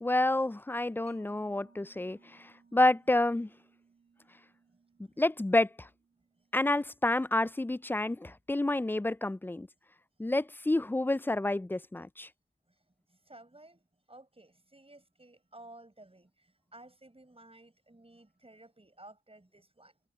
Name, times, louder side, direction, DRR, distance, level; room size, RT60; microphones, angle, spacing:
voice 1, 0.0-3.5 5.2-5.9 6.5-9.7 10.2-12.3, left 2 dB, 10° left, 0.3 m, -29 dB
Mallet percussion, 1.1-8.1, right 3 dB, 50° right, 2.1 m, -66 dB
voice 2, 13.1-20.0, right 2 dB, 30° right, 7.9 m, -55 dB
cardioid pair, 45°, 20 cm